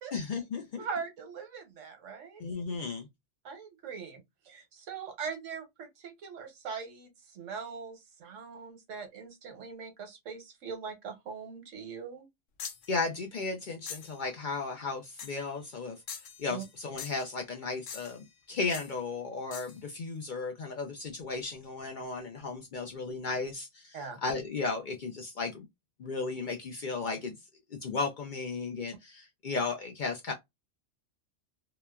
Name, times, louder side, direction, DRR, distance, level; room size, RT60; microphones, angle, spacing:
voice 1, 0.1-0.8 2.4-3.1 12.6-16.0 16.4-25.7 26.0-27.3 27.7-30.3, left 4 dB, 60° left, 0.5 m, -35 dB
voice 2, 0.8-2.4 3.4-12.3 16.5-16.6 23.9-24.2, right 6 dB, 90° right, 1.2 m, -41 dB
sound 1, 12.6-12.9 13.9-14.2 15.2-15.5 16.1-16.7 17.0-17.3 17.9-18.3 18.7-18.9 19.5-19.8, left 7 dB, 80° left, 1.0 m, -43 dB
2.9 x 2.1 x 2.2 m
omnidirectional pair, 1.2 m